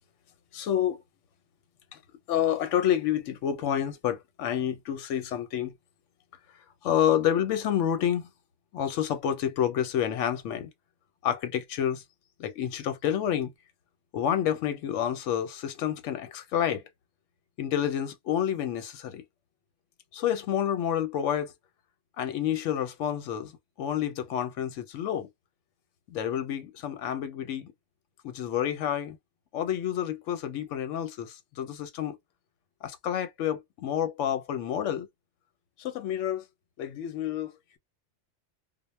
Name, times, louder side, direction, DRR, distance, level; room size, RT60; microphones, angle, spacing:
voice 1, 0.5-1.0 1.9-2.0 2.3-5.7 6.8-8.3 8.7-10.7 11.2-12.0 12.4-13.5 14.1-16.8 17.6-19.2 20.1-21.5 22.2-23.5 23.8-25.3 26.1-27.7 28.2-29.2 29.5-32.2 32.8-35.1 35.8-36.4 36.8-37.8, left 10 dB, 90° left, 0.9 m, -29 dB
2.1 x 2.0 x 3.1 m
omnidirectional pair, 1.2 m